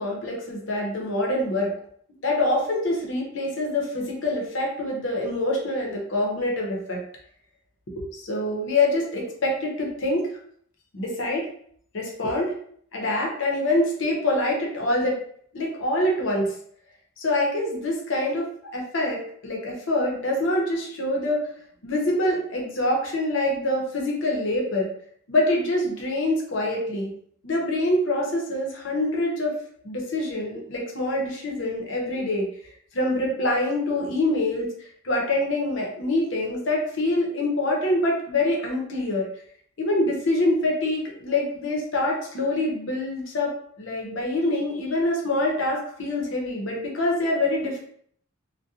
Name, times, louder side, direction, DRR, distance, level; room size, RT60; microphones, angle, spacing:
voice 1, 0.0-1.7 2.1-7.0 8.0-10.2 10.9-11.5 11.9-12.5 12.9-15.2 15.5-16.5 17.2-18.5 18.7-21.4 21.8-24.9 25.3-27.1 27.4-29.5 29.8-32.5 32.9-34.7 35.0-39.3 39.8-43.5 43.8-47.8, left 1 dB, 60° left, -1 dB, 0.7 m, -25 dB
2.3 x 2.2 x 2.7 m, 0.62 s
head